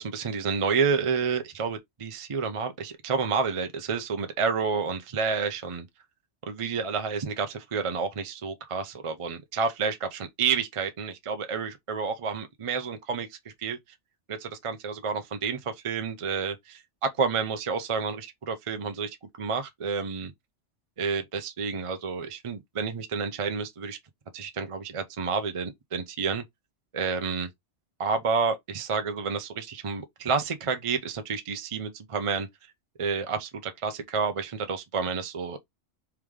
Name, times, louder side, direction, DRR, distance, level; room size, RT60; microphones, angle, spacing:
voice 1, 0.0-5.9 6.5-13.8 14.3-20.3 21.0-24.0 24.3-26.4 26.9-27.5 28.0-32.5 33.0-35.6, right 5 dB, 40° right, 0.5 m, -30 dB
3.5 x 3.2 x 3.5 m
omnidirectional pair, 1.3 m